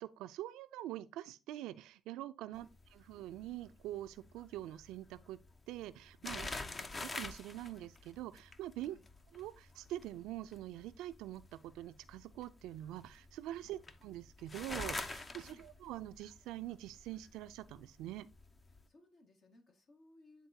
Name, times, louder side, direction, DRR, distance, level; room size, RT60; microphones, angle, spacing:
voice 1, 0.0-2.7 2.9-5.4 5.7-6.5 7.0-9.0 9.3-18.3, right 14 dB, 90° right, 0.4 m, -45 dB
sound 1, 2.5-18.9, left 2 dB, 30° left, 0.7 m, -48 dB
voice 2, 6.2-6.8 8.8-9.0 13.6-13.8 15.3-15.7 18.6-20.5, left 3 dB, 55° left, 1.7 m, -64 dB
9.5 x 3.8 x 2.8 m
cardioid pair, 85°, 0 cm